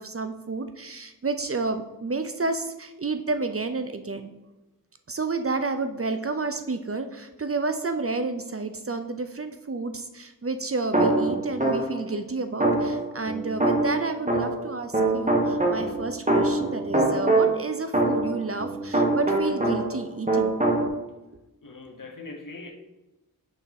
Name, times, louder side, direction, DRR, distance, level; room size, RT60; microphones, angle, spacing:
voice 1, 0.0-4.3 5.1-20.5, right 3 dB, 40° right, 8 dB, 0.6 m, -30 dB
sound 1, 10.9-12.1 12.6-14.7 14.9-20.0 20.3-20.9, right 2 dB, 20° right, 1.3 m, -23 dB
voice 2, 21.6-22.7, left 3 dB, 60° left, 3 dB, 1.2 m, -41 dB
6.8 x 3.5 x 5.8 m, 0.99 s
wide cardioid pair, 50°, 37 cm